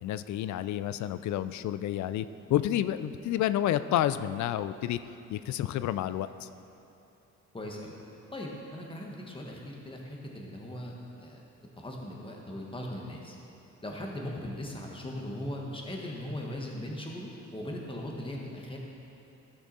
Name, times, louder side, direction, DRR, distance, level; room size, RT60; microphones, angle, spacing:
voice 1, 0.0-5.0 5.3-6.5, left 12 dB, 70° left, 13 dB, 0.4 m, -30 dB
voice 2, 7.5-7.9 8.3-11.4 11.8-13.4 13.8-18.8, left 1 dB, 15° left, -1 dB, 1.6 m, -39 dB
13.5 x 6.1 x 4.2 m, 2.9 s
cardioid pair, 90°, 30 cm